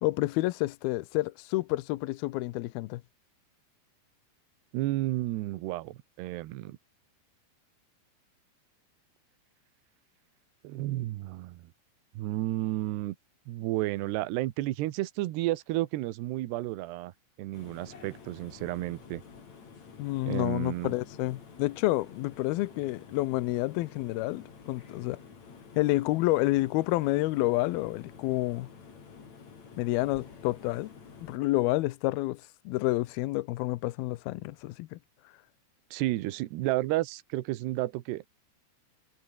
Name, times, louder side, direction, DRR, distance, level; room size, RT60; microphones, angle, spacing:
voice 1, 0.0-3.0 20.0-25.2 25.8-28.7 29.8-30.9 31.3-35.0, left 19 dB, 80° left, 2.3 m, -29 dB
voice 2, 4.7-6.8 10.6-11.6 12.1-13.2 13.5-17.1 17.4-19.2 20.3-20.9 35.9-38.3, right 17 dB, 75° right, 3.0 m, -32 dB
sound 1, 17.5-31.4, left 5 dB, 40° left, 4.8 m, -50 dB
omnidirectional pair, 5.2 m